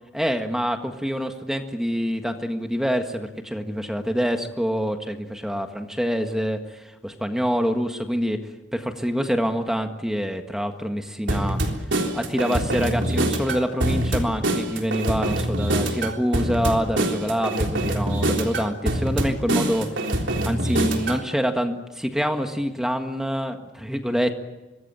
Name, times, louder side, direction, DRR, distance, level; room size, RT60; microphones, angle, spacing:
voice 1, 0.1-8.4 8.7-11.8 12.1-20.0 20.4-24.3, equal, 5° right, 5 dB, 1.7 m, -26 dB
sound 1, 11.3-21.2, right 1 dB, 80° right, 3.6 m, -24 dB
25.5 x 20.5 x 9.0 m, 1.1 s
head